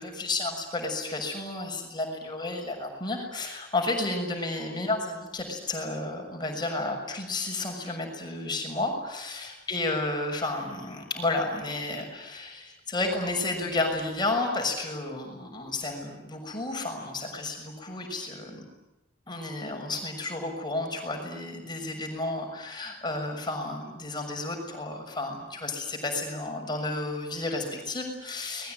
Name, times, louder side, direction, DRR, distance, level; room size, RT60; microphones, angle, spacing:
voice 1, 0.0-18.6 19.3-28.7, left 2 dB, 20° left, 2 dB, 6.5 m, -32 dB
29.0 x 21.0 x 9.2 m, 0.98 s
head